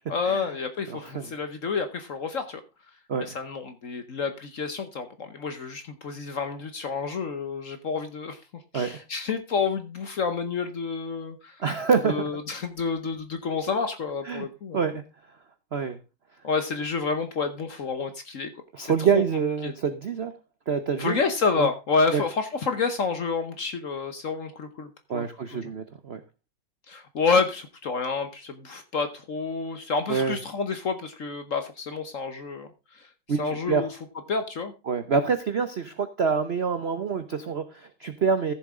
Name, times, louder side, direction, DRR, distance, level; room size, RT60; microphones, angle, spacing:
voice 1, 0.1-2.6 3.3-8.4 8.7-11.6 12.0-14.8 16.4-18.5 18.8-19.2 19.6-19.7 21.0-24.9 25.1-25.3 25.5-25.7 26.9-33.0 33.4-33.9 34.3-34.7, left 4 dB, 50° left, 8 dB, 1.0 m, -29 dB
voice 2, 0.9-1.3 3.1-3.4 8.7-9.0 11.6-12.3 14.2-14.5 14.7-15.0 15.7-16.0 18.7-20.3 20.7-21.2 21.6-21.7 22.1-22.2 25.1-26.2 30.1-30.4 33.3-33.9 34.9-38.5, right 6 dB, 65° right, 9 dB, 0.6 m, -26 dB
14.0 x 7.2 x 3.7 m, 0.29 s
omnidirectional pair, 2.2 m